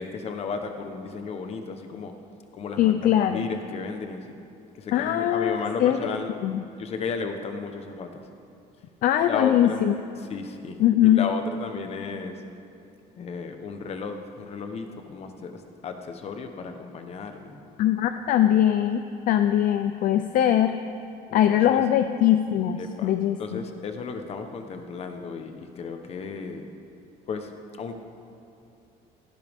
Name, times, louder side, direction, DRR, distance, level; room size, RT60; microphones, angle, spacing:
voice 1, 0.0-2.1 2.5-4.3 4.8-6.3 6.8-8.2 9.2-9.8 10.3-10.8 11.0-12.4 13.2-17.7 21.3-21.8 22.8-23.1 23.4-26.7 27.3-27.5 27.8-27.9, left 5 dB, 35° left, 6 dB, 1.1 m, -34 dB
voice 2, 2.8-3.5 4.9-6.0 6.4-6.6 9.0-9.9 10.8-11.3 17.8-20.8 21.3-23.6, left 11 dB, 55° left, 9 dB, 0.5 m, -21 dB
17.5 x 16.0 x 3.6 m, 2.6 s
cardioid pair, 165°, 17 cm